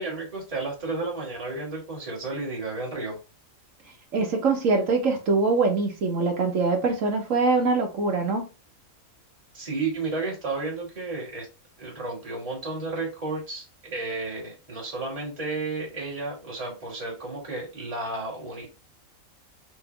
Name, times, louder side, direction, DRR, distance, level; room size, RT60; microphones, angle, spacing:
voice 1, 0.0-3.2 9.5-11.5 11.8-18.7, right 3 dB, 25° right, 1.9 m, -32 dB
voice 2, 4.1-8.5, right 3 dB, 65° right, 1.3 m, -23 dB
5.8 x 2.6 x 3.3 m
omnidirectional pair, 1.5 m